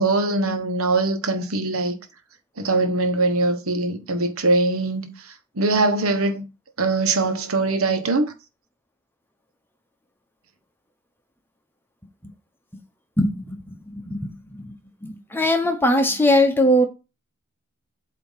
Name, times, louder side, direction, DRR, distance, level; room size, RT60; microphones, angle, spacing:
voice 1, 0.0-2.0 2.6-6.5 6.8-8.3, right 2 dB, 85° right, 1.2 m, -22 dB
voice 2, 13.2-13.6 13.9-14.7 15.0-16.8, left 1 dB, 10° left, 0.9 m, -20 dB
8.3 x 2.9 x 5.6 m
head